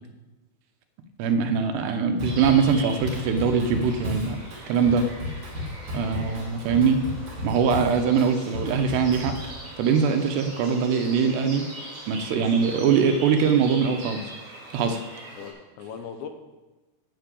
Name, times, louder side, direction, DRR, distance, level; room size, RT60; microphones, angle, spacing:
voice 1, 1.2-4.4 4.7-5.1 5.9-7.0 7.4-9.3 9.8-11.7 12.1-14.2 14.7-15.0, right 6 dB, 80° right, 6 dB, 3.0 m, -22 dB
sound 1, 2.2-15.5, right 2 dB, 30° right, 3.8 m, -41 dB
Drum kit / Drum, 2.2-9.5, left 2 dB, 45° right, 3.9 m, -33 dB
voice 2, 15.3-16.3, left 7 dB, 85° left, 6 dB, 3.3 m, -39 dB
11.5 x 6.0 x 8.2 m, 1.1 s
omnidirectional pair, 4.9 m